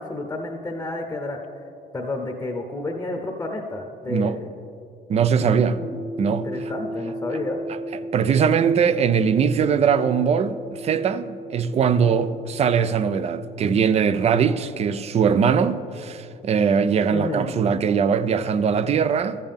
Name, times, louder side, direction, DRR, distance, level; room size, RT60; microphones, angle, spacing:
voice 1, 0.0-1.4 1.9-4.5 5.3-6.0 6.3-7.6 12.0-12.1 17.1-17.6, left 2 dB, 15° left, 0.8 m, -31 dB
voice 2, 4.1-4.4 5.1-5.8 6.2-6.7 8.1-19.4, right 6 dB, 40° right, 0.4 m, -21 dB
sound 1, 5.7-14.5, right 1 dB, 70° right, 2.3 m, -36 dB
13.0 x 7.5 x 3.5 m
cardioid pair, 110°, 17 cm